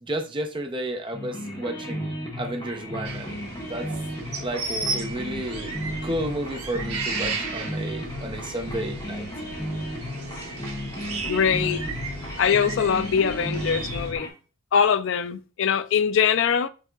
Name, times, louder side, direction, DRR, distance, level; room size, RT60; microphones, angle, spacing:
voice 1, 0.0-2.1 2.4-3.9 4.4-5.7 6.0-9.3, right 1 dB, 20° right, 0.7 m, -32 dB
sound 1, 1.1-14.3, equal, 20° left, 1.0 m, -34 dB
sound 2, 2.6-14.2, left 1 dB, 55° right, 1.3 m, -44 dB
sound 3, 3.0-14.1, right 4 dB, 90° right, 1.1 m, -35 dB
voice 2, 11.2-11.8 12.4-14.3 14.7-16.7, left 7 dB, 55° left, 0.3 m, -22 dB
4.7 x 2.8 x 3.8 m
head